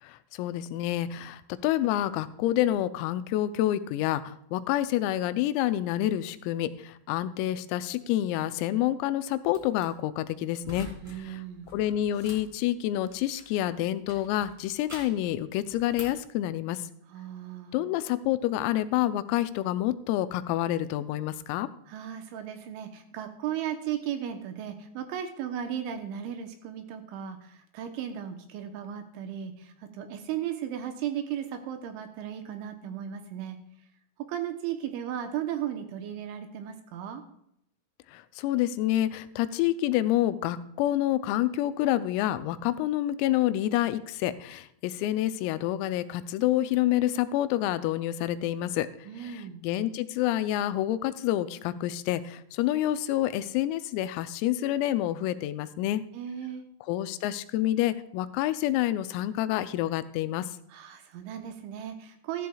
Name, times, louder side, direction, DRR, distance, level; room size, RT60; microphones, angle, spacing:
voice 1, 0.0-10.9 11.2-11.4 11.7-16.9 17.7-21.7 38.1-48.9 49.2-56.0 56.9-60.5, left 13 dB, 90° left, 12 dB, 3.4 m, -28 dB
sound 1, 9.5-9.8 10.6-11.2 11.5-13.6 14.1-15.3 15.7-16.3, equal, 10° right, 1.2 m, -46 dB
voice 2, 11.0-11.7 17.1-17.8 21.9-33.6 34.3-37.2 49.1-49.6 56.1-56.6 60.7-62.5, right 10 dB, 75° right, 6 dB, 3.1 m, -36 dB
14.0 x 13.5 x 2.3 m, 0.74 s
omnidirectional pair, 5.9 m